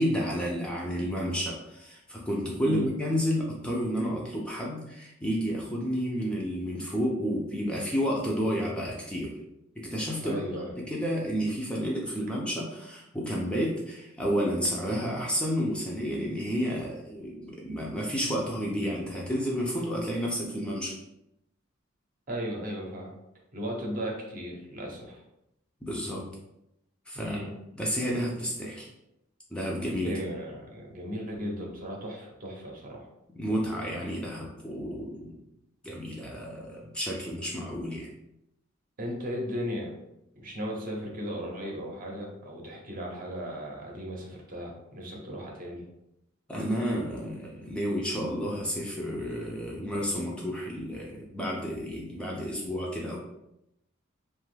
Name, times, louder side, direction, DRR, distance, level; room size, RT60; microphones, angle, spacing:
voice 1, 0.0-9.4 9.8-21.0 25.8-26.2 27.1-27.4 27.8-28.9 29.5-30.2 33.4-35.4 35.8-38.1 46.5-53.2, equal, 5° left, -3 dB, 0.4 m, -31 dB
voice 2, 10.2-10.7 22.3-23.1 23.5-25.2 27.1-27.5 30.0-33.1 39.0-40.0 40.4-45.8, equal, 45° right, -1 dB, 0.7 m, -36 dB
2.9 x 2.3 x 3.2 m, 0.85 s
head